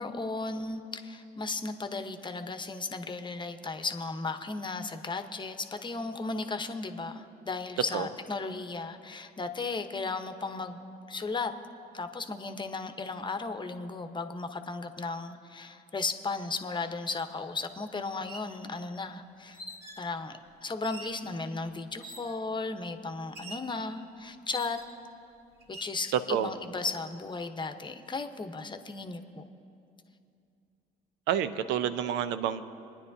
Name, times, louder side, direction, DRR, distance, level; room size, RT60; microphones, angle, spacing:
voice 1, 0.0-10.8 11.1-11.5 11.9-19.6 20.0-24.8 25.7-29.4, left 3 dB, 25° left, 8 dB, 1.0 m, -35 dB
sound 1, 17.2-17.3 18.1-18.5 19.5-20.1 20.8-21.2 22.0-22.4 23.4-23.7 24.5-25.1 25.6-26.0, equal, 50° right, 2.7 m, -44 dB
voice 2, 26.1-26.5 31.3-32.6, right 9 dB, 70° right, 12 dB, 0.7 m, -28 dB
27.5 x 10.0 x 2.7 m, 2.6 s
hypercardioid pair, 60°, 19 cm